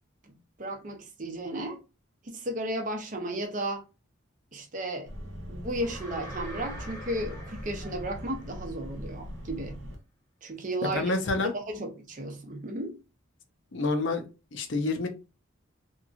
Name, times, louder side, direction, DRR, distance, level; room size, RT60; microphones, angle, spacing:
voice 1, 0.6-1.8 2.2-3.8 4.5-5.1 5.5-9.8 10.4-11.1 11.5-13.0, right 1 dB, 40° right, 0.5 m, -34 dB
sound 1, 5.0-9.9, equal, 65° right, 0.8 m, -41 dB
sound 2, 5.8-8.9, equal, 15° left, 0.8 m, -45 dB
voice 2, 10.8-11.5 13.7-14.2 14.5-15.1, left 3 dB, 60° left, 0.6 m, -28 dB
2.9 x 2.5 x 2.4 m
head